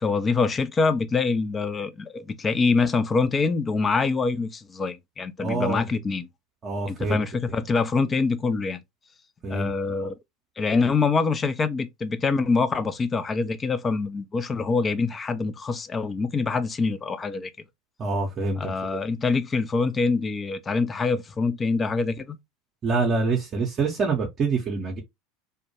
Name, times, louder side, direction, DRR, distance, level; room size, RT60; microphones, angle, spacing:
voice 1, 0.0-6.3 6.9-8.8 9.5-10.2 10.6-17.5 18.6-22.4, left 4 dB, 25° left, 0.4 m, -25 dB
voice 2, 5.4-5.8 6.6-7.2 7.5-7.6 9.4-10.1 18.0-19.0 22.8-25.0, right 4 dB, 35° right, 0.6 m, -26 dB
2.1 x 2.1 x 2.8 m
hypercardioid pair, 80°, 0 cm